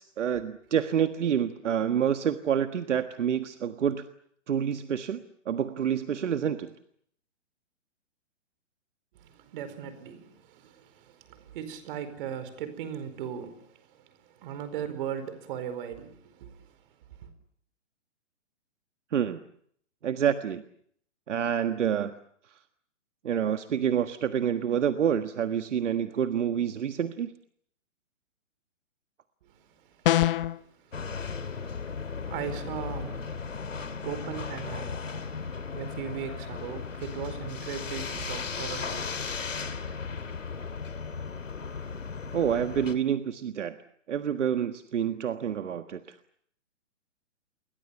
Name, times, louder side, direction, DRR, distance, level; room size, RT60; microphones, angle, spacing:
voice 1, 0.0-4.1 4.5-6.7 19.1-19.4 20.0-20.6 21.3-22.1 23.2-27.3 42.3-43.7 44.1-46.2, right 8 dB, 70° right, 1.6 m, -28 dB
voice 2, 9.2-16.8 29.4-29.5 30.0-30.1 30.6-31.7 32.1-39.2, right 8 dB, 45° right, 4.8 m, -39 dB
sound 1, 30.1-30.6, left 13 dB, 45° left, 1.1 m, -23 dB
sound 2, 30.9-42.9, left 5 dB, 90° left, 2.7 m, -36 dB
29.0 x 23.5 x 7.1 m
hypercardioid pair, 140°, 37 cm